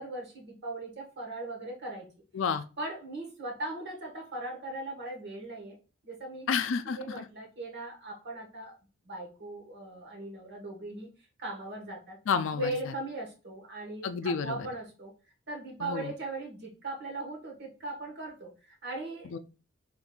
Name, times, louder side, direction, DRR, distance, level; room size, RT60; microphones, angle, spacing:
voice 1, 0.0-2.1 2.8-5.8 6.0-6.5 6.9-8.7 9.0-11.1 11.4-12.2 12.5-15.1 15.5-19.3, right 2 dB, 55° right, 0 dB, 1.2 m, -39 dB
voice 2, 6.5-7.3 12.3-12.7 14.0-14.7 15.8-16.1 19.3-19.4, left 6 dB, 65° left, 11 dB, 0.4 m, -30 dB
3.7 x 3.7 x 2.3 m, 0.33 s
head